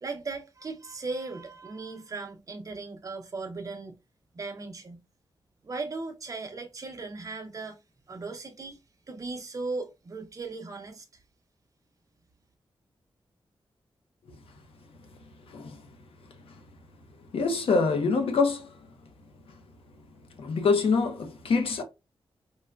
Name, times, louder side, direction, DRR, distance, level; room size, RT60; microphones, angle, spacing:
voice 1, 0.0-4.0 4.3-5.0 5.6-7.8 8.1-8.8 9.1-11.1, right 3 dB, 35° right, 0.6 m, -37 dB
voice 2, 15.5-15.8 17.3-18.7 20.4-21.8, left 4 dB, 80° left, 0.6 m, -25 dB
4.6 x 2.2 x 2.3 m
wide cardioid pair, 180°, 9 cm